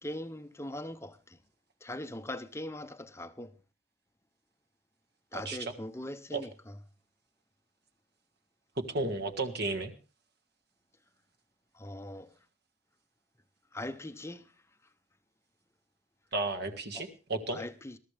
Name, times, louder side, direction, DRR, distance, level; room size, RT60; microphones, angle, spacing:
voice 1, 0.0-1.4 1.8-3.5 5.3-6.7 11.7-12.3 13.7-14.5 16.9-17.1 17.5-18.0, left 1 dB, 15° left, 0.7 m, -41 dB
voice 2, 5.3-5.7 6.3-6.4 8.9-9.9 16.3-17.6, right 2 dB, 50° right, 1.7 m, -33 dB
21.0 x 13.0 x 3.4 m
head